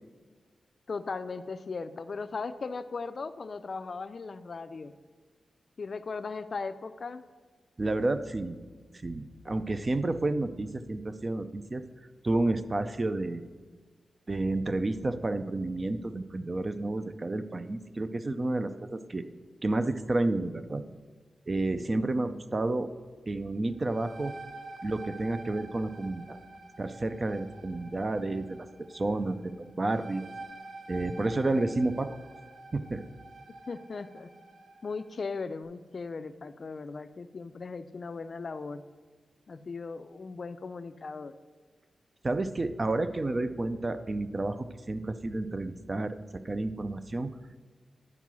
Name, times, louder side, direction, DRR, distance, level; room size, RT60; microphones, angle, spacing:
voice 1, 0.9-4.9 5.8-7.2 33.7-34.3 34.8-38.8 39.5-41.3, left 4 dB, 50° left, 11 dB, 0.4 m, -38 dB
voice 2, 7.8-8.6 9.0-11.8 12.2-13.4 14.3-19.2 19.6-20.8 21.5-22.9 23.3-24.3 24.8-26.4 26.8-28.7 28.9-30.3 30.9-32.2 32.7-33.0 42.2-47.3, right 2 dB, 30° right, 11 dB, 0.4 m, -30 dB
sound 1, 23.7-35.1, right 2 dB, 90° right, 1.3 m, -48 dB
11.0 x 4.6 x 6.1 m, 1.5 s
wide cardioid pair, 120°, 0 cm